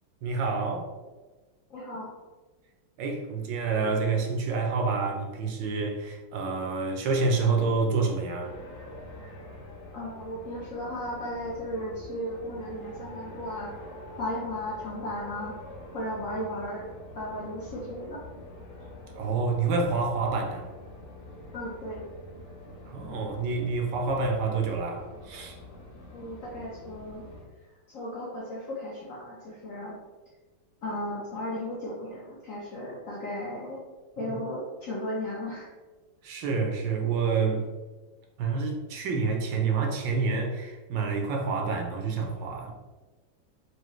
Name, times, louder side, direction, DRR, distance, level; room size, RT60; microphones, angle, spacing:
voice 1, 0.2-0.9 3.0-8.5 19.2-20.7 22.9-25.6 34.2-34.3 36.2-37.6 38.4-42.7, right 4 dB, 75° right, 2 dB, 1.3 m, -28 dB
voice 2, 1.7-2.1 9.9-13.7 14.2-15.6 15.9-16.9 17.2-18.2 21.5-22.0 26.1-27.3 27.9-30.0 30.8-33.8 34.2-35.7, left 1 dB, 65° left, -5 dB, 0.8 m, -35 dB
sound 1, 8.4-27.4, left 1 dB, 45° left, 1.1 m, -45 dB
4.9 x 2.6 x 3.0 m, 1.3 s
omnidirectional pair, 2.1 m